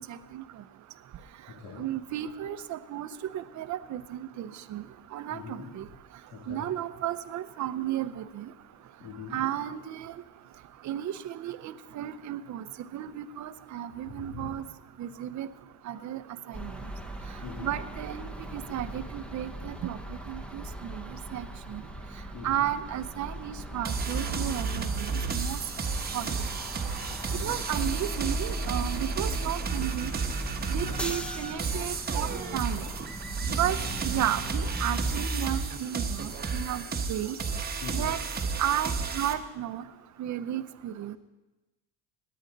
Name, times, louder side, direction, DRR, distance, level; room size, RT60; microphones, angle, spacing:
voice 1, 0.1-0.4 1.8-3.1 3.3-4.8 5.1-5.8 6.5-8.5 9.3-10.2 10.8-12.6 12.9-14.7 15.0-15.5 15.9-16.2 16.5-16.7 17.6-20.0 20.3-21.0 21.3-21.8 22.4-25.6 26.1-26.3 27.4-30.1 30.7-32.9 33.6-33.8 34.0-36.8 37.1-37.4 37.9-38.2 38.6-39.8 40.2-41.2, right 11 dB, 45° right, 12 dB, 0.7 m, -33 dB
voice 2, 5.3-5.7 6.3-6.7 9.0-9.4 14.1-14.5 17.4-17.7 22.3-22.6 27.1-27.5 30.8-31.1 33.8-33.9 37.8-38.1, left 5 dB, 85° left, -5 dB, 2.9 m, -42 dB
sound 1, 16.5-35.3, right 1 dB, 5° left, 0.8 m, -41 dB
sound 2, 23.8-39.3, right 4 dB, 25° right, 1.0 m, -32 dB
18.0 x 9.7 x 3.9 m, 1.1 s
cardioid pair, 120°, 40 cm